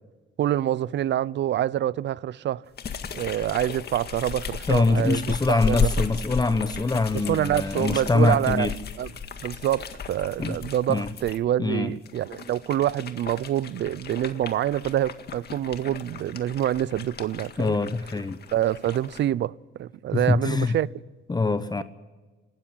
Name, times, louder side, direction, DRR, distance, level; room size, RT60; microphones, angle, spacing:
voice 1, 0.4-2.6 3.1-5.9 7.1-9.1 9.4-17.8 18.5-20.9, right 12 dB, 65° right, 0.6 m, -26 dB
sound 1, 2.8-11.4 12.0-19.3, left 6 dB, 55° left, 1.9 m, -35 dB
voice 2, 4.7-8.8 10.4-10.6 10.9-11.1 11.6-11.9 17.6-18.4 20.1-20.8 21.3-21.8, left 3 dB, 20° left, 1.0 m, -24 dB
27.0 x 13.5 x 9.8 m
cardioid pair, 90°, 20 cm